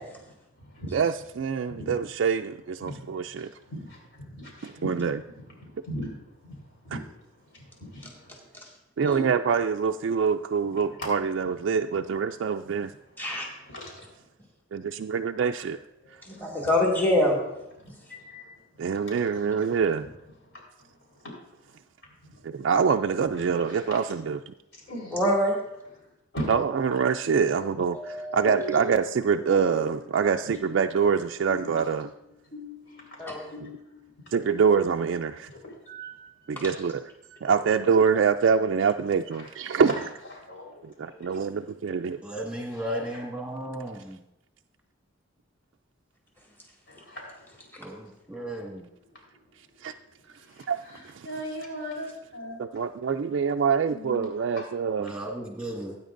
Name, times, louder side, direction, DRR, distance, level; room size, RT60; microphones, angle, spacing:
voice 1, 0.0-0.9 1.7-2.0 2.8-8.4 10.2-10.3 10.7-11.0 12.7-14.2 16.0-16.6 17.8-20.1 20.4-21.8 22.2-22.6 23.4-23.9 24.7-25.2 26.3-26.5 27.1-29.0 29.3-30.1 30.5-31.0 31.5-32.2 32.5-35.2 35.5-36.5 39.3-39.5 40.4-42.3 42.7-43.2 46.9-48.0 48.3-48.4 49.1-49.2 49.8-50.0 50.2-53.6 53.8-54.3 54.5-55.5, equal, 60° left, -2 dB, 4.1 m, -42 dB
voice 2, 0.9-3.5 4.6-5.2 9.0-12.9 14.7-15.8 18.8-20.1 22.4-24.5 26.5-32.1 34.3-35.5 36.5-37.0 37.4-39.9 40.8-42.2 49.8-49.9 50.7-50.8 51.1-51.3 52.6-55.1, right 6 dB, 60° right, 5 dB, 0.3 m, -25 dB
voice 3, 16.3-17.4 17.9-18.0 25.1-25.6 27.9-28.6 33.2-33.5, left 1 dB, 10° left, -3 dB, 1.9 m, -25 dB
voice 4, 42.2-44.2 47.8-48.9 55.0-56.0, right 1 dB, 5° right, -1 dB, 1.7 m, -35 dB
17.5 x 9.3 x 2.6 m, 0.90 s
head